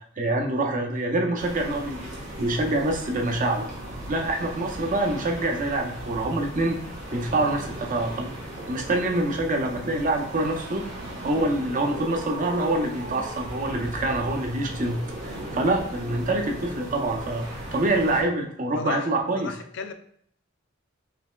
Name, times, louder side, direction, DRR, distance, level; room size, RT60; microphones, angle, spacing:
voice 1, 0.2-3.7 4.1-6.8 7.1-8.3 8.7-10.8 11.2-19.5, right 2 dB, 40° right, 0.6 m, -26 dB
sound 1, 1.4-18.2, right 1 dB, 85° right, 1.5 m, -37 dB
voice 2, 18.8-19.1 19.4-19.9, left 6 dB, 65° left, 0.4 m, -33 dB
4.9 x 3.1 x 2.3 m
head